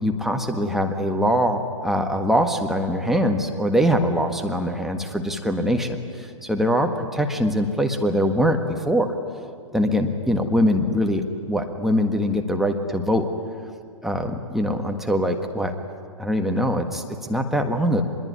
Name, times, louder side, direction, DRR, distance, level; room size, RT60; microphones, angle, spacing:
voice 1, 0.0-9.1 9.7-13.3 14.0-15.7 16.2-17.0 17.3-18.0, equal, ahead, 3 dB, 1.6 m, -23 dB
24.5 x 22.0 x 9.6 m, 2.1 s
hypercardioid pair, 120°, 17 cm